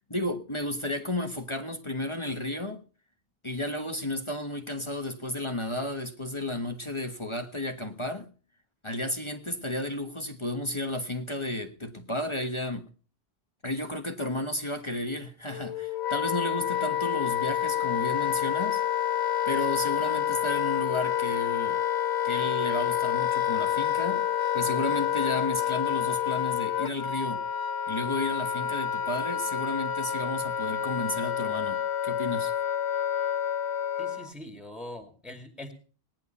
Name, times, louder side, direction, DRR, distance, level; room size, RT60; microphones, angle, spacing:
voice 1, 0.1-2.8 3.4-8.3 8.8-12.9 13.6-18.8 19.5-21.8 22.2-24.2 24.5-27.4 27.9-32.5, left 1 dB, 30° left, 6 dB, 1.4 m, -33 dB
Wind instrument woodwind instrument, 15.5-34.3, left 10 dB, 80° left, 1.1 m, -28 dB
voice 2, 34.0-35.7, left 1 dB, ahead, 5 dB, 2.3 m, -42 dB
19.0 x 10.5 x 5.5 m, 0.40 s
omnidirectional pair, 1.1 m